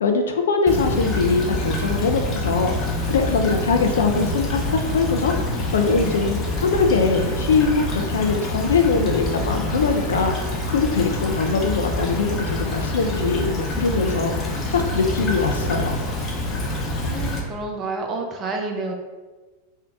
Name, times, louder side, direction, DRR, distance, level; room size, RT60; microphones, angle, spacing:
voice 1, 0.0-2.7 3.1-4.6 4.9-5.3 5.7-14.3 14.7-16.0, left 4 dB, 65° left, 5 dB, 0.4 m, -22 dB
Stream / Trickle dribble, 0.7-17.4, left 1 dB, 30° left, 0.6 m, -26 dB
voice 2, 17.0-18.9, right 3 dB, 25° right, 2 dB, 0.5 m, -29 dB
3.6 x 2.2 x 3.6 m, 1.3 s
figure-of-eight pair, 90°, 0 cm